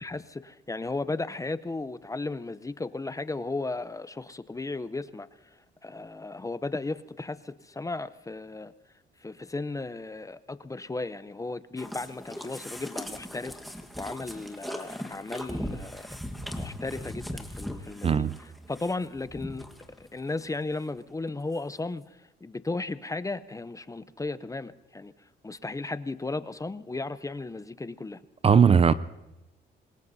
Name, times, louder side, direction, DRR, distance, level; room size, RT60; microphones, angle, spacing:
voice 1, 0.0-5.3 5.8-8.7 9.2-13.6 14.0-16.2 16.5-19.7 20.0-22.1 22.4-25.1 25.4-28.2, left 3 dB, 15° left, 0.6 m, -35 dB
sound 1, 11.8-20.1 20.4-20.5 21.0-21.1 21.3-21.4, equal, ahead, 1.4 m, -39 dB
voice 2, 18.0-18.4 28.4-28.9, right 6 dB, 30° right, 0.4 m, -18 dB
26.0 x 20.5 x 2.7 m
cardioid pair, 90°, 20 cm